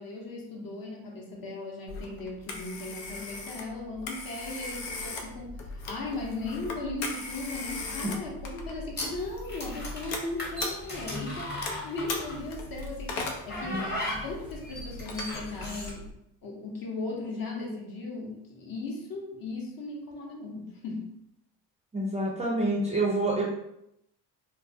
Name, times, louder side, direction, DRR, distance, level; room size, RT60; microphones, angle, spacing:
voice 1, 0.0-16.1 16.4-21.1, left 2 dB, 45° left, -1 dB, 0.8 m, -37 dB
Telephone, 1.9-16.1, left 3 dB, 75° left, 0.7 m, -39 dB
sound 1, 9.0-12.5 13.2-15.9, left 1 dB, 20° left, 1.0 m, -37 dB
voice 2, 21.9-23.4, right 2 dB, 15° right, -4 dB, 0.5 m, -27 dB
2.3 x 2.2 x 2.6 m, 0.80 s
supercardioid pair, 75°, 50 cm